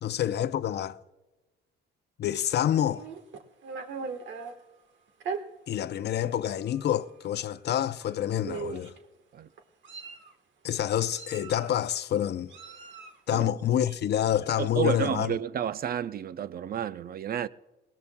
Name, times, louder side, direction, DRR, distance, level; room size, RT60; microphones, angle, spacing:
voice 1, 0.0-1.0 2.2-3.1 5.7-8.9 10.6-12.5 13.3-15.4, left 11 dB, 60° left, 0.5 m, -27 dB
Meow, 2.9-4.5 5.2-5.4 6.2-6.4 6.7-6.9 8.0-8.1 8.4-9.0 9.6-10.3 11.1-11.9 12.5-13.2, right 5 dB, 70° right, 1.4 m, -38 dB
voice 2, 14.6-17.5, right 9 dB, 50° right, 0.4 m, -31 dB
20.5 x 18.0 x 2.2 m
cardioid pair, 90°, 20 cm